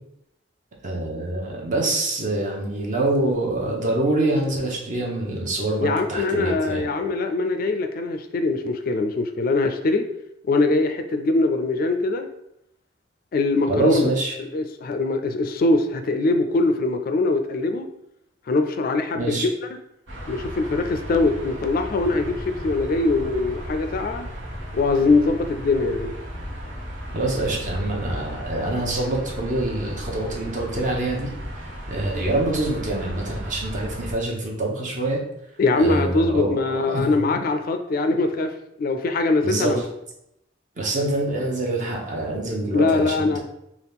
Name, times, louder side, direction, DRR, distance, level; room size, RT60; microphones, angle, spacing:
voice 1, 0.8-6.8 13.7-14.3 19.1-19.5 27.1-31.3 31.6-35.2 35.7-37.4 39.4-39.8 40.8-43.4, right 2 dB, 45° right, -1 dB, 0.8 m, -25 dB
voice 2, 5.8-10.1 10.5-12.3 13.3-14.1 14.4-17.8 18.5-19.5 20.3-24.3 24.7-26.2 35.6-38.5 38.8-39.8 42.7-43.4, left 3 dB, 50° left, 7 dB, 0.3 m, -22 dB
sound 1, 20.1-34.1, equal, 85° right, 1.1 m, -35 dB
4.0 x 2.4 x 3.5 m, 0.81 s
head